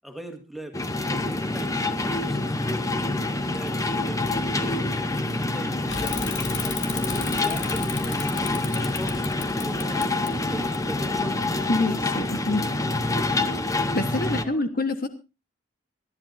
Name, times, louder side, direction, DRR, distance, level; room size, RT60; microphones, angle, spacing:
voice 1, 0.0-0.7 1.1-4.8 5.3-9.2 9.6-11.4 14.3-14.7, right 1 dB, ahead, 4 dB, 2.0 m, -40 dB
sound 1, 0.7-14.4, left 2 dB, 15° left, 0.8 m, -26 dB
sound 2, 2.9-5.7 6.4-13.5, equal, 85° left, 8.0 m, -48 dB
Bicycle / Mechanisms, 5.9-11.3, left 6 dB, 70° left, 2.4 m, -36 dB
voice 2, 11.7-12.6 13.9-15.1, left 2 dB, 45° left, 8 dB, 1.2 m, -26 dB
25.5 x 11.5 x 2.6 m, 0.29 s
head